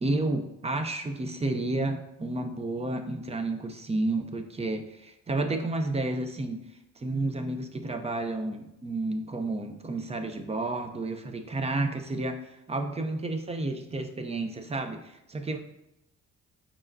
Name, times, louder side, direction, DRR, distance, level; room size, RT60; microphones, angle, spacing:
voice 1, 0.0-6.6 7.0-15.6, right 2 dB, 20° right, 6 dB, 0.6 m, -31 dB
4.8 x 4.2 x 2.6 m, 0.88 s
cardioid pair, 90°, 30 cm